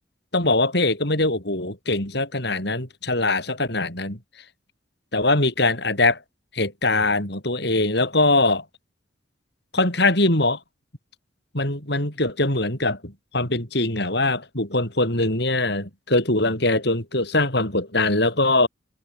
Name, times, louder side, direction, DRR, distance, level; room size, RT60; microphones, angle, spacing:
voice 1, 0.3-4.2 5.1-6.2 6.5-8.6 9.7-10.6 11.5-18.7, left 2 dB, 60° left, 7.6 m, -22 dB
head